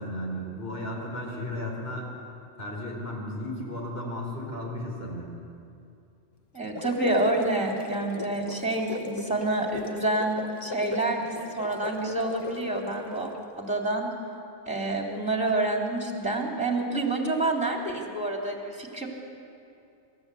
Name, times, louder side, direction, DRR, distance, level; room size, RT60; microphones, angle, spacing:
voice 1, 0.0-2.1 2.6-5.3, left 1 dB, 60° left, -2 dB, 4.7 m, -34 dB
voice 2, 6.5-14.1 14.7-19.1, right 2 dB, 5° right, 0 dB, 3.0 m, -28 dB
sound 1, 6.6-13.4, left 3 dB, 25° left, 0.8 m, -39 dB
27.0 x 13.5 x 8.4 m, 2.6 s
omnidirectional pair, 1.2 m